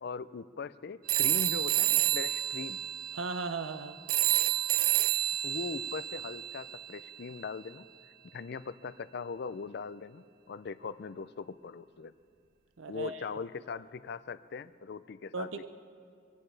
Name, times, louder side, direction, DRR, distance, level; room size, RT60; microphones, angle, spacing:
voice 1, 0.0-2.8 5.4-7.9 8.3-12.1 12.9-15.7, left 5 dB, 55° left, 15 dB, 0.4 m, -40 dB
sound 1, 1.1-7.2, right 14 dB, 45° right, 0.3 m, -30 dB
voice 2, 3.1-4.0 12.8-13.2 15.3-15.7, right 4 dB, 90° right, 10 dB, 0.6 m, -36 dB
23.5 x 16.0 x 3.3 m, 2.2 s
head